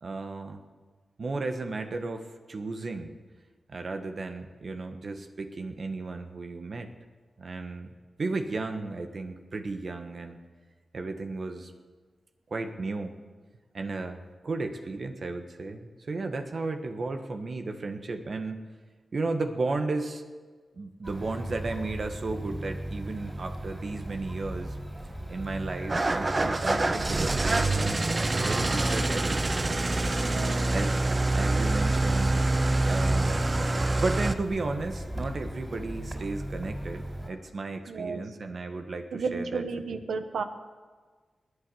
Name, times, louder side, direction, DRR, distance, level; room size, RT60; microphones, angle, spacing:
voice 1, 0.0-0.6 1.2-3.2 3.7-6.9 7.4-7.9 8.2-10.4 10.9-11.7 12.5-13.2 13.7-18.6 19.1-20.2 20.7-24.8 25.3-29.4 29.8-30.1 30.7-31.0 31.3-32.4 32.8-33.6 33.9-39.6, right 3 dB, 60° right, 6 dB, 1.3 m, -34 dB
sound 1, 21.0-37.3, right 1 dB, 15° right, 4.6 m, -37 dB
Engine starting / Idling, 25.9-34.3, right 2 dB, 40° right, 0.9 m, -26 dB
voice 2, 30.2-30.7 37.9-38.2 39.1-40.4, right 4 dB, 80° right, 8 dB, 1.1 m, -33 dB
20.5 x 8.3 x 7.0 m, 1.4 s
supercardioid pair, 40°, 0 cm